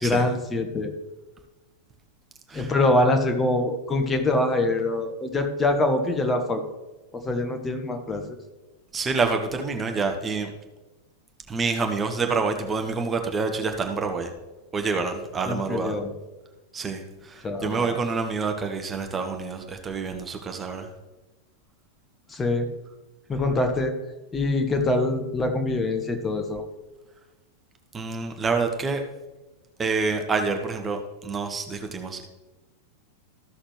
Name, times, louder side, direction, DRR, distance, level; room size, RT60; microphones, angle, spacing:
voice 1, 0.0-0.9 2.5-6.6 7.1-8.2 15.5-16.1 17.4-18.0 22.3-22.7 23.3-23.9 24.3-26.6, left 2 dB, 15° left, 5 dB, 1.1 m, -24 dB
voice 2, 8.9-10.5 11.5-14.3 14.7-15.9 16.7-20.9 27.9-29.0 29.8-32.3, right 4 dB, 20° right, 5 dB, 1.0 m, -27 dB
14.0 x 6.4 x 3.1 m, 1.1 s
figure-of-eight pair, 90°, 0 cm